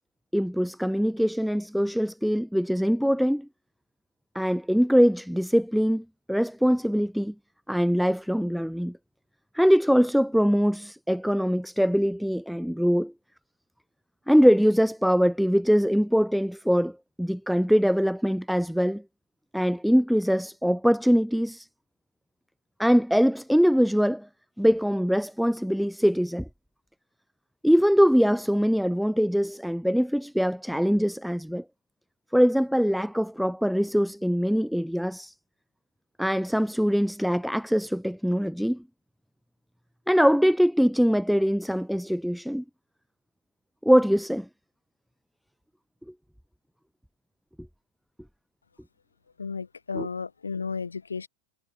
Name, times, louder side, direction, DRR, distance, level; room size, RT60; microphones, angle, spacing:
voice 1, 0.3-3.5 4.3-7.3 7.7-9.0 9.5-13.1 14.3-19.0 19.5-21.7 22.8-24.3 24.6-26.5 27.6-31.6 32.3-35.3 36.2-38.8 40.1-42.6 43.8-44.5 49.9-50.1, equal, ahead, 0.5 m, -23 dB
voice 2, 49.4-51.3, left 5 dB, 75° left, 1.3 m, -33 dB
figure-of-eight pair, 90°, 0 cm